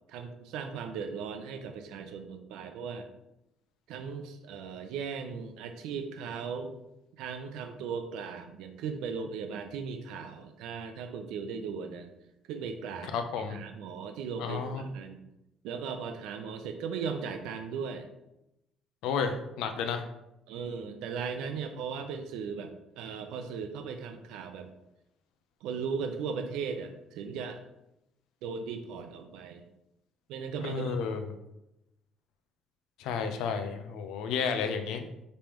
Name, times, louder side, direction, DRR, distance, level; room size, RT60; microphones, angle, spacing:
voice 1, 0.1-3.1 3.9-6.8 7.2-12.1 12.5-13.2 13.5-15.2 15.6-18.1 20.5-24.7 25.6-27.6 28.4-29.6 30.3-31.0, right 6 dB, 85° right, 6 dB, 0.5 m, -37 dB
voice 2, 13.1-13.6 14.4-14.8 19.0-20.0 30.6-31.3 33.0-35.0, left 6 dB, 80° left, 7 dB, 0.5 m, -32 dB
5.2 x 3.4 x 3.0 m, 0.86 s
cardioid pair, 175°, 0 cm